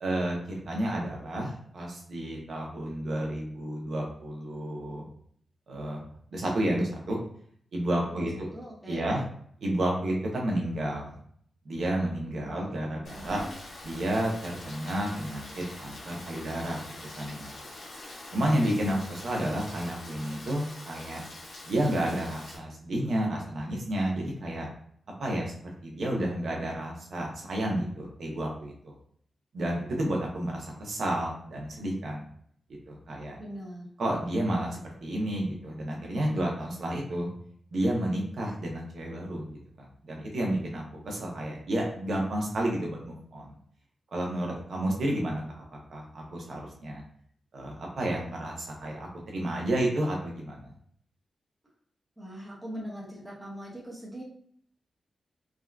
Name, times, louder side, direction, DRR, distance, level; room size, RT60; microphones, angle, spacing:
voice 1, 0.0-5.1 5.7-6.0 6.3-7.2 7.7-8.5 8.9-9.2 9.6-11.1 11.7-13.4 13.8-17.5 18.3-21.2 21.7-24.7 25.2-25.5 25.8-29.0 29.5-32.3 32.9-33.3 34.0-37.3 37.7-39.5 40.0-43.5 44.1-45.4 45.7-47.0 47.5-50.7, right 1 dB, 60° right, -1 dB, 0.6 m, -31 dB
voice 2, 7.9-9.1 12.4-13.5 33.4-33.9 52.2-54.2, equal, 10° right, -5 dB, 0.7 m, -42 dB
Rain, 13.0-22.6, left 2 dB, 80° left, 0.7 m, -45 dB
3.5 x 2.2 x 2.2 m, 0.63 s
wide cardioid pair, 170°, 0 cm